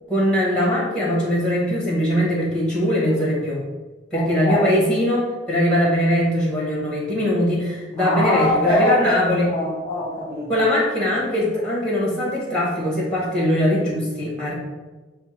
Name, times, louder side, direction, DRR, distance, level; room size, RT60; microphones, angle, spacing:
voice 1, 0.1-3.6 4.1-9.5 10.5-14.5, equal, 5° left, -5 dB, 1.4 m, -21 dB
voice 2, 4.1-4.7 8.0-10.6, left 1 dB, 25° left, -7 dB, 0.9 m, -23 dB
5.6 x 2.1 x 4.4 m, 1.2 s
head